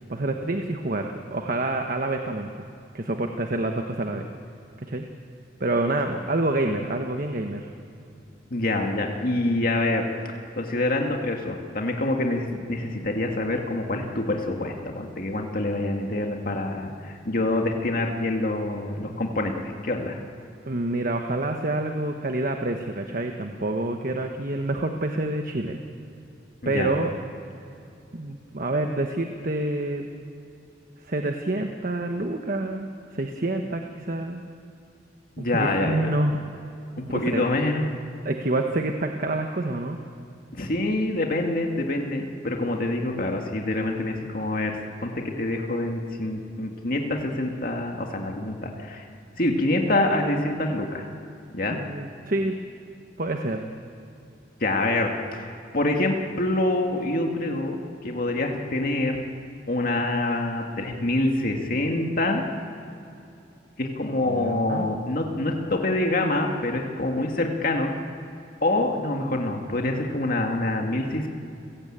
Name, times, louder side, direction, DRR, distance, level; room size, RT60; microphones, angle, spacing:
voice 1, 0.1-2.5 2.9-4.3 4.8-5.0 5.6-7.7 20.6-25.8 26.6-27.1 28.1-30.1 31.0-34.4 35.4-36.4 37.1-37.5 38.2-40.0 51.7-52.6 53.2-53.6 64.2-64.9, right 2 dB, 45° right, 4 dB, 1.2 m, -27 dB
voice 2, 8.5-10.0 10.6-20.2 26.6-26.9 35.4-36.1 37.1-37.8 40.5-49.1 49.4-51.1 51.5-51.8 54.6-55.5 55.7-57.8 58.0-59.2 59.7-62.4 63.8-67.9 68.6-71.3, left 2 dB, 50° left, 2 dB, 2.1 m, -26 dB
29.5 x 16.0 x 8.8 m, 2.7 s
head